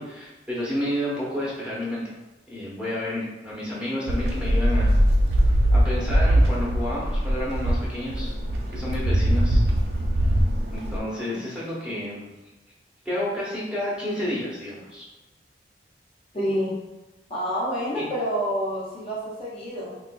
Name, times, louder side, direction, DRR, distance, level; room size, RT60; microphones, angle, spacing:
voice 1, 0.0-2.1 2.5-4.9 5.7-8.3 8.7-9.6 10.7-12.3 13.0-15.0 18.0-18.1, left 1 dB, 5° right, -7 dB, 0.9 m, -30 dB
sound 1, 4.1-11.0, equal, 65° right, 0.5 m, -21 dB
voice 2, 11.0-11.4 16.3-16.8 17.3-19.9, equal, 35° left, -7 dB, 0.6 m, -28 dB
3.7 x 2.5 x 2.2 m, 1.1 s
head